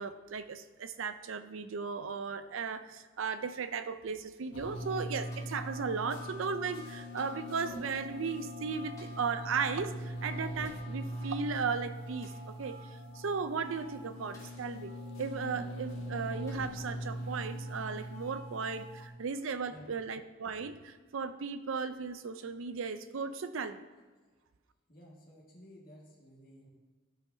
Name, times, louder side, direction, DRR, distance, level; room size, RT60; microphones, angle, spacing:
voice 1, 0.0-14.9 15.2-23.8, right 5 dB, 80° right, 11 dB, 0.5 m, -36 dB
sound 1, 4.5-19.1, equal, 75° left, 2.0 m, -41 dB
sound 2, 5.3-5.7 7.2-7.6 9.0-9.4 10.6-11.0 12.2-12.5 14.3-14.7 15.7-15.8 16.5-16.8 18.0-18.3 19.9-20.1, left 2 dB, 15° left, 1.2 m, -60 dB
voice 2, 24.9-26.7, equal, 45° left, -3 dB, 1.8 m, -54 dB
12.5 x 5.4 x 2.7 m, 1.3 s
head